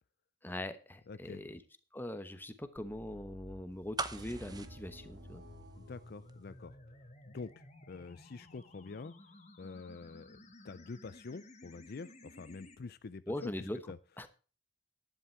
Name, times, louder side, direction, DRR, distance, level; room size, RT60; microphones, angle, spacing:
voice 1, 0.4-1.6 1.9-5.4 13.3-13.8 14.2-14.3, left 1 dB, 10° left, 9 dB, 1.0 m, -41 dB
voice 2, 1.1-1.4 5.8-6.8 7.3-9.1 9.6-10.4 10.6-14.0, left 4 dB, 50° left, 14 dB, 0.5 m, -46 dB
sound 1, 2.8-12.8, left 1 dB, 35° left, 1.8 m, -55 dB
sound 2, 4.0-6.0 6.3-6.4, right 3 dB, 20° right, 0.8 m, -41 dB
sound 3, 4.1-7.1, right 1 dB, 60° right, 1.7 m, -54 dB
11.5 x 10.0 x 4.5 m, 0.36 s
head